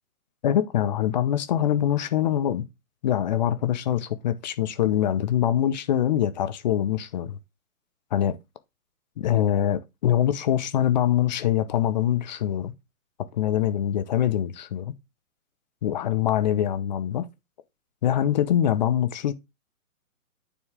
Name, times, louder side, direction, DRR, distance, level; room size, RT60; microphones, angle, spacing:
voice 1, 0.4-2.7 3.0-7.4 8.1-8.4 9.2-12.7 13.4-14.9 15.8-17.3 18.0-19.3, left 10 dB, 30° left, 0.8 m, -24 dB
10.0 x 4.5 x 3.7 m
figure-of-eight pair, 135°, 43 cm